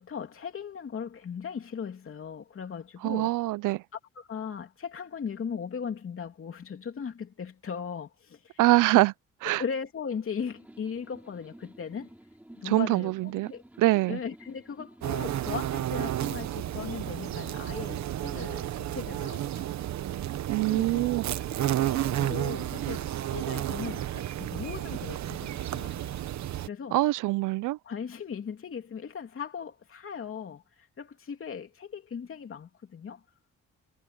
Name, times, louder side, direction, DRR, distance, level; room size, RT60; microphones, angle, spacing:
voice 1, 0.0-3.3 3.9-8.6 8.9-9.0 9.6-12.1 12.5-13.6 14.1-19.6 20.7-21.1 21.9-26.2 26.6-27.0 27.8-33.2, left 6 dB, 45° left, 3.0 m, -38 dB
voice 2, 3.0-3.8 8.6-9.1 9.4-9.6 12.6-13.5 13.8-14.2 20.5-21.2 26.9-27.8, right 18 dB, 85° right, 0.5 m, -24 dB
sound 1, 10.4-15.8, right 1 dB, 5° right, 5.6 m, -52 dB
sound 2, 15.0-26.7, right 12 dB, 65° right, 1.0 m, -32 dB
cardioid pair, 105°, 31 cm